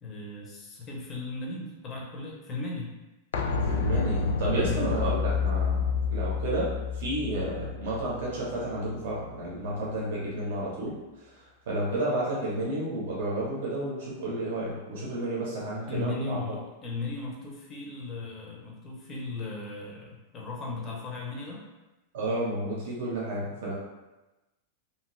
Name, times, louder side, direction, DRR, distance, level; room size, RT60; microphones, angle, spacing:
voice 1, 0.0-2.9 4.6-4.8 15.9-21.6, left 3 dB, 15° left, -2 dB, 0.5 m, -36 dB
sound 1, 3.3-9.0 9.3-9.4, left 5 dB, 75° left, 0.3 m, -29 dB
voice 2, 3.7-5.8 6.1-10.9 11.3-16.4 22.1-23.7, right 1 dB, 60° right, -5 dB, 0.8 m, -31 dB
2.7 x 2.2 x 3.0 m, 1.0 s
supercardioid pair, 180°, 0 cm